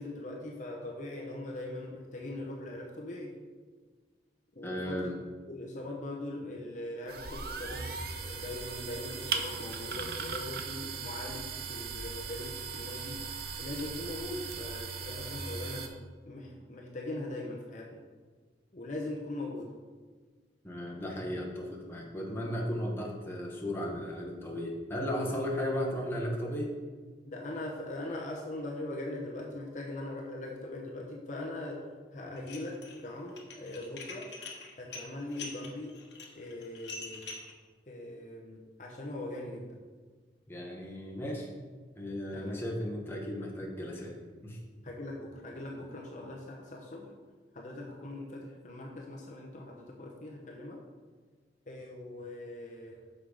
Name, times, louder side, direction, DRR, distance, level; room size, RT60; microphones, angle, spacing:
voice 1, 0.0-3.4 4.5-5.1 5.5-13.3 13.6-16.0 16.3-18.0 18.7-19.7 25.3-25.4 27.2-34.3 34.8-36.0 36.3-37.2 37.9-39.8 42.3-42.6 44.8-47.1 47.5-50.8 51.7-53.0, left 1 dB, 40° left, -1 dB, 0.8 m, -41 dB
voice 2, 4.6-5.1 20.6-26.7 40.5-41.5 42.0-44.2 44.4-44.6, equal, 15° left, -2 dB, 1.1 m, -35 dB
sound 1, 7.1-15.9, right 5 dB, 55° right, 0.7 m, -38 dB
Dishes pots and pans, 32.4-33.0 33.3-37.5, left 3 dB, 70° left, 1.3 m, -44 dB
6.6 x 5.9 x 4.9 m, 1.4 s
head